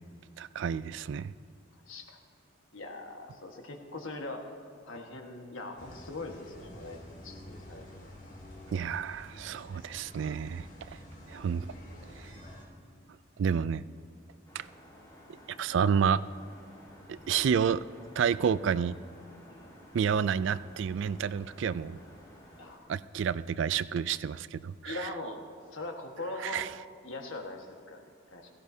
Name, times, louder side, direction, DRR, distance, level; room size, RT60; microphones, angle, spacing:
voice 1, 0.4-1.3 8.7-11.0 11.3-11.7 12.2-12.3 13.4-13.8 14.5-14.7 15.6-16.2 17.1-17.8 18.2-18.9 19.9-22.0 22.9-25.0 26.4-26.7, right 7 dB, 65° right, 17 dB, 0.3 m, -29 dB
voice 2, 1.9-2.2 2.7-4.5 4.9-8.1 9.7-9.8 19.5-19.7 22.6-22.9 24.8-25.4 25.7-26.6 27.0-28.5, left 2 dB, 80° left, 3 dB, 1.5 m, -41 dB
sound 1, 5.8-12.6, equal, 40° left, 2.0 m, -49 dB
sound 2, 14.5-22.8, equal, 20° left, 2.4 m, -53 dB
17.0 x 15.5 x 2.7 m, 2.3 s
head